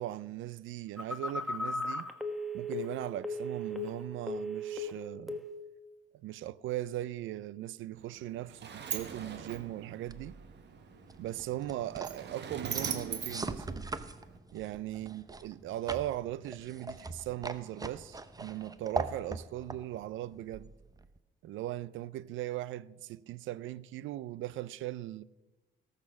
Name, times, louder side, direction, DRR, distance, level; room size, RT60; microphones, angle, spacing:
voice 1, 0.0-2.1 2.5-5.4 6.2-10.4 11.2-13.9 14.5-20.7 21.4-25.2, right 14 dB, 80° right, 0.5 m, -39 dB
Telephone, 1.0-4.0 4.3-4.9 5.3-5.6, left 1 dB, ahead, 1.2 m, -36 dB
Sliding door, 8.0-14.4, right 7 dB, 60° right, 1.5 m, -41 dB
sound 1, 10.1-21.2, right 3 dB, 20° right, 0.7 m, -42 dB
17.5 x 6.6 x 6.3 m
cardioid pair, 90°, 20 cm